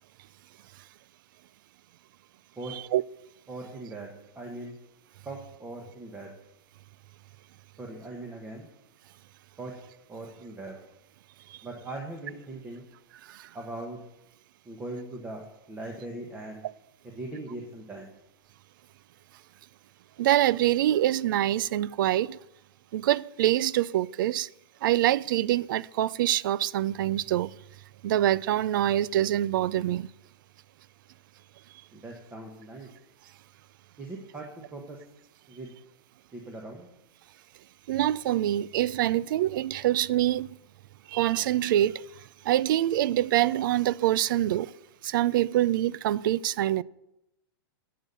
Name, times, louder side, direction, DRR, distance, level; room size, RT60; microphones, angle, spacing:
voice 1, 3.5-4.1 4.3-4.8 5.2-6.3 7.8-8.7 9.6-9.7 10.1-10.8 11.6-12.9 13.5-14.0 14.6-16.6 17.1-18.1 31.9-32.9 34.0-34.5 34.7-35.0 35.5-35.7 36.3-36.9, right 2 dB, 10° right, 1.3 m, -40 dB
voice 2, 20.2-22.4 22.9-24.5 24.8-27.5 28.0-30.1 37.9-40.5 41.1-42.1 42.4-44.7 45.0-46.8, right 13 dB, 55° right, 0.4 m, -25 dB
11.5 x 8.5 x 6.9 m
supercardioid pair, 165°, 13 cm